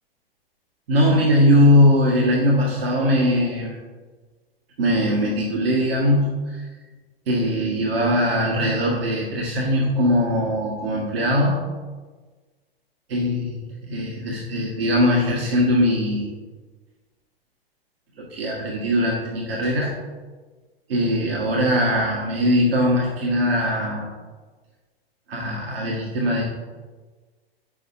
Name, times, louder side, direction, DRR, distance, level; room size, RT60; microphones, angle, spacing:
voice 1, 0.9-3.8 4.8-6.7 7.3-11.5 13.1-13.6 13.9-16.3 18.2-19.9 20.9-24.1 25.3-26.4, equal, 70° right, -4 dB, 1.6 m, -20 dB
8.9 x 6.7 x 2.7 m, 1.4 s
figure-of-eight pair, 95°, 31 cm